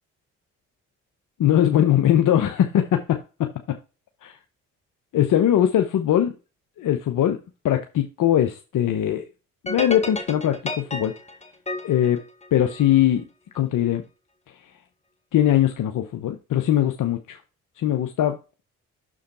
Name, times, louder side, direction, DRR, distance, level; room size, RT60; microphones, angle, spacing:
voice 1, 1.4-3.5 4.2-4.3 5.1-6.3 6.8-7.4 7.6-9.2 9.6-11.1 11.8-12.2 12.5-13.2 13.5-14.0 15.3-17.4 17.8-18.6, left 11 dB, 65° left, 0.9 m, -21 dB
sound 1, 9.7-13.0, left 1 dB, 20° left, 1.5 m, -32 dB
6.3 x 5.0 x 4.2 m
supercardioid pair, 55°, 33 cm